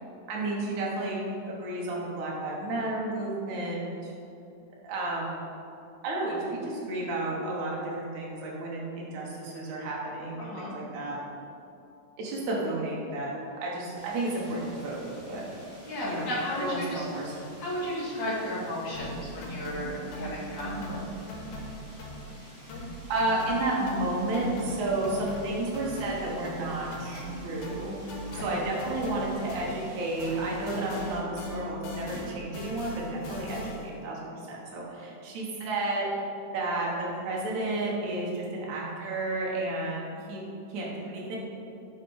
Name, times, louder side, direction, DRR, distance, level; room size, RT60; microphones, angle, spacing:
voice 1, 0.3-4.1 4.8-5.4 6.0-11.2 12.2-13.3 13.6-15.4 16.0-16.3 16.6-17.4 20.8-20.9 23.1-28.0 28.3-36.1 36.5-40.4 40.7-41.4, right 2 dB, 75° right, -4 dB, 2.7 m, -32 dB
voice 2, 10.4-10.7 15.8-17.0 17.6-21.0 28.3-28.5, left 1 dB, 40° left, -8 dB, 2.4 m, -34 dB
sound 1, 13.9-31.2, equal, 30° right, 1.4 m, -51 dB
sound 2, 18.9-22.4 22.7-29.9 30.2-34.0, equal, 85° left, 2.6 m, -40 dB
7.5 x 5.4 x 4.7 m, 2.7 s
omnidirectional pair, 3.5 m